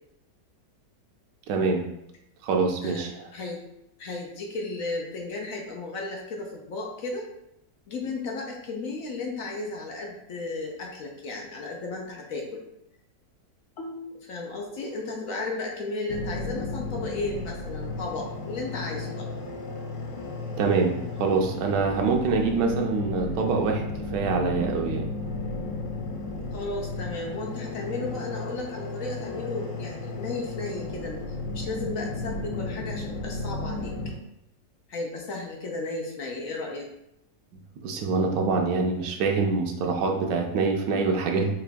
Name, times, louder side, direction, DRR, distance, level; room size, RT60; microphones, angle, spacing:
voice 1, 1.5-1.9 2.4-3.3 20.6-25.1 37.8-41.5, right 4 dB, 90° right, 2 dB, 1.3 m, -25 dB
voice 2, 4.0-7.3 7.9-12.6 13.8-19.3 26.5-31.2 31.5-33.9 34.9-36.9, left 3 dB, 60° left, 0 dB, 0.9 m, -34 dB
sound 1, 16.1-34.1, left 2 dB, 85° left, 1.3 m, -34 dB
4.7 x 2.5 x 3.4 m, 0.83 s
omnidirectional pair, 1.8 m